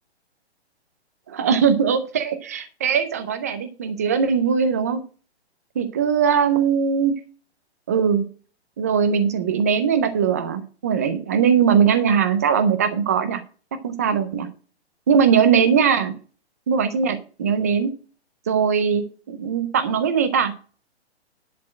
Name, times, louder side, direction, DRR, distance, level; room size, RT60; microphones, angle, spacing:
voice 1, 1.3-5.0 5.8-7.1 7.9-8.2 8.8-13.4 13.8-14.5 15.1-16.1 16.7-17.9 18.5-20.5, right 7 dB, 15° right, 10 dB, 0.4 m, -20 dB
10.5 x 4.2 x 7.3 m, 0.40 s
hypercardioid pair, 150°, 33 cm